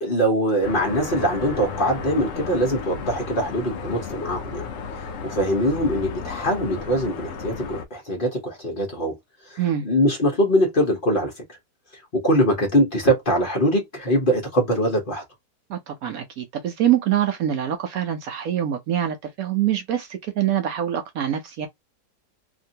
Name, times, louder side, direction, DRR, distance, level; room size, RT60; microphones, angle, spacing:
voice 1, 0.0-4.7 5.0-9.1 9.4-11.4 11.9-15.2, equal, 40° left, 1.0 m, -22 dB
sound 1, 0.6-7.9, left 5 dB, 65° left, 0.8 m, -33 dB
voice 2, 15.7-21.7, right 11 dB, 70° right, 0.9 m, -24 dB
2.9 x 2.6 x 2.7 m
omnidirectional pair, 1.7 m